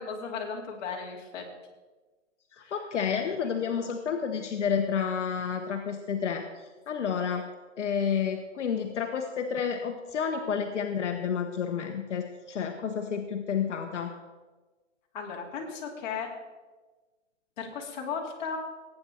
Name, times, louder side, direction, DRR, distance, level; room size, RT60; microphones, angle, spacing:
voice 1, 0.0-1.4 2.6-2.7 15.1-16.3 17.6-18.6, left 6 dB, 40° left, -1 dB, 2.8 m, -35 dB
voice 2, 2.5-7.5 7.8-14.1, left 7 dB, 70° left, 4 dB, 1.3 m, -30 dB
18.0 x 8.9 x 4.5 m, 1.3 s
hypercardioid pair, 160°, 37 cm